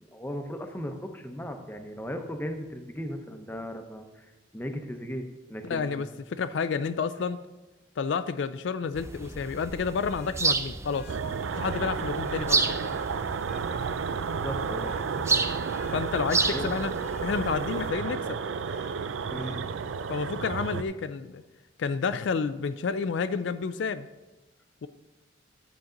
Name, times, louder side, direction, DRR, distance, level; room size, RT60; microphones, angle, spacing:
voice 1, 0.0-4.3 4.5-6.0 14.3-15.0 16.5-16.7 19.3-19.6, equal, 10° left, 5 dB, 0.7 m, -37 dB
voice 2, 5.6-7.4 8.0-11.2 11.5-12.8 15.9-16.9 17.2-18.4 20.1-21.4 21.8-24.1 24.8-24.9, left 5 dB, 70° left, 12 dB, 0.4 m, -30 dB
Vehicle horn car horn honking, 7.2-7.3 10.0-13.7 14.2-14.5 14.8-17.4 17.8-19.6 21.4-21.5, left 4 dB, 40° left, 1.1 m, -54 dB
sound 1, 8.9-17.9, right 4 dB, 15° right, 0.4 m, -32 dB
sound 2, 11.1-20.8, right 6 dB, 85° right, 0.4 m, -32 dB
10.5 x 7.3 x 3.8 m, 1.1 s
head